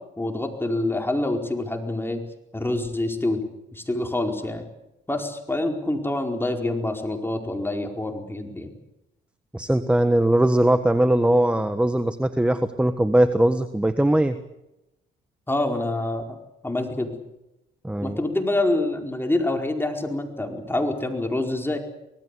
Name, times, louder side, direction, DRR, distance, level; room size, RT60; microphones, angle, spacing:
voice 1, 0.2-2.2 2.5-3.4 3.7-4.7 5.1-8.7 15.5-16.4 16.6-17.2 18.0-21.8, left 2 dB, 10° left, 3 dB, 4.6 m, -26 dB
voice 2, 9.5-14.4 17.8-18.2, right 1 dB, 5° right, 11 dB, 1.3 m, -20 dB
25.0 x 18.5 x 8.4 m, 0.90 s
cardioid pair, 90°, 20 cm